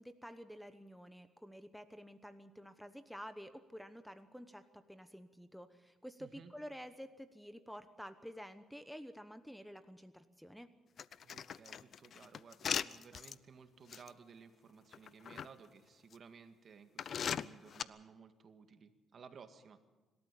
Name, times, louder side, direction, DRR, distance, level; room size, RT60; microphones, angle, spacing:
voice 1, 0.0-10.7, equal, ahead, 11 dB, 1.0 m, -50 dB
voice 2, 6.2-6.5 11.2-19.8, right 6 dB, 50° right, 8 dB, 1.9 m, -57 dB
sound 1, 11.0-13.3 13.9-14.1 14.9-15.5 16.1-16.2 17.0-17.8, left 8 dB, 55° left, 0.6 m, -39 dB
25.5 x 13.0 x 8.4 m, 1.2 s
cardioid pair, 90°, 0 cm